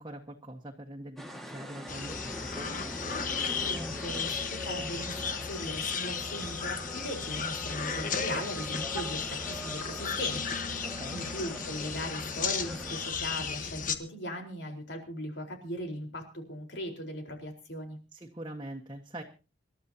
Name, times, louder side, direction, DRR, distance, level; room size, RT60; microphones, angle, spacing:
voice 1, 0.0-2.7 10.8-11.2 18.1-19.2, right 1 dB, 25° right, -1 dB, 1.5 m, -43 dB
sound 1, 1.2-13.1, equal, ahead, 1.8 m, -43 dB
sound 2, 1.9-14.0, left 6 dB, 45° left, 1.4 m, -35 dB
voice 2, 3.6-5.1 5.4-10.5 10.7-10.9 11.1-18.0, equal, 70° left, 3 dB, 4.4 m, -39 dB
sound 3, 10.3-15.2, left 3 dB, 85° left, 3.7 m, -52 dB
27.0 x 12.5 x 2.9 m, 0.33 s
head